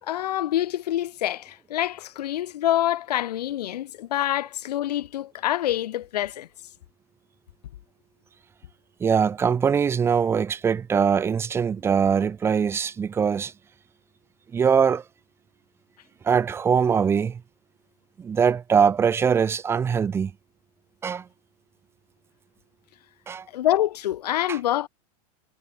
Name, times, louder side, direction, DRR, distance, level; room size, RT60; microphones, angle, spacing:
voice 1, 0.0-6.5 23.5-24.9, left 13 dB, 85° left, 4.2 m, -26 dB
voice 2, 9.0-13.5 14.5-15.0 16.2-17.4 18.2-20.3 21.0-21.3 23.3-23.5 24.5-24.6, right 6 dB, 10° right, 3.4 m, -22 dB
supercardioid pair, 180°, 20 cm